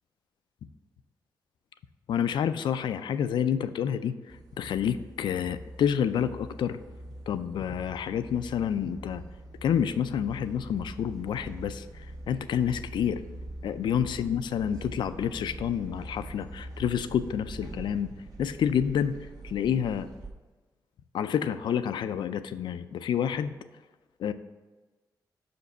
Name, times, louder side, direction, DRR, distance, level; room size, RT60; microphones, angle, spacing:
voice 1, 2.1-4.1 4.6-6.8 7.3-9.2 9.6-11.8 12.3-13.2 13.6-18.1 18.4-19.1 19.4-20.1 21.1-23.5 24.2-24.3, left 8 dB, 85° left, 11 dB, 0.4 m, -28 dB
sound 1, 4.3-20.3, right 1 dB, 55° right, 1.4 m, -43 dB
5.9 x 5.2 x 6.6 m, 1.3 s
wide cardioid pair, 140°, 8 cm